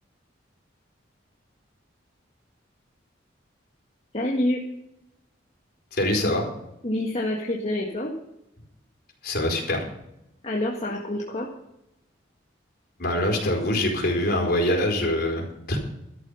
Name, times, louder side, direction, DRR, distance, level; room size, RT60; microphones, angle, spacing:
voice 1, 4.1-4.6 6.8-8.1 10.4-11.5, left 1 dB, 35° left, -3 dB, 1.8 m, -27 dB
voice 2, 5.9-6.5 9.2-9.9 13.0-15.8, left 1 dB, 55° left, 0 dB, 4.5 m, -24 dB
13.0 x 11.5 x 5.7 m, 0.84 s
head